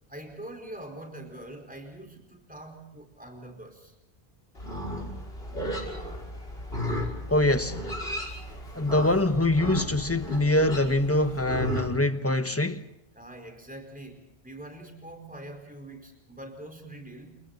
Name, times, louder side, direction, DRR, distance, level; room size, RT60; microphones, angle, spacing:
voice 1, 0.1-3.9 13.1-17.3, right 1 dB, 10° right, 4.7 m, -44 dB
Livestock farm animals working animals, 4.6-11.9, equal, 75° left, 6.3 m, -34 dB
voice 2, 7.3-7.8 8.7-12.9, left 1 dB, 15° left, 1.2 m, -24 dB
29.5 x 29.5 x 4.3 m
omnidirectional pair, 1.0 m